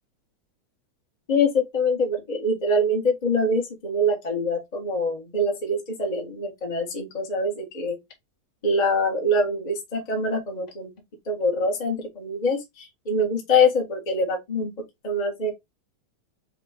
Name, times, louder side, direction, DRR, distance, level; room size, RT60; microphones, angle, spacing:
voice 1, 1.3-8.0 8.6-10.9 11.3-14.7 15.0-15.5, left 1 dB, 85° left, 0.3 m, -24 dB
4.8 x 3.0 x 3.5 m
omnidirectional pair, 3.7 m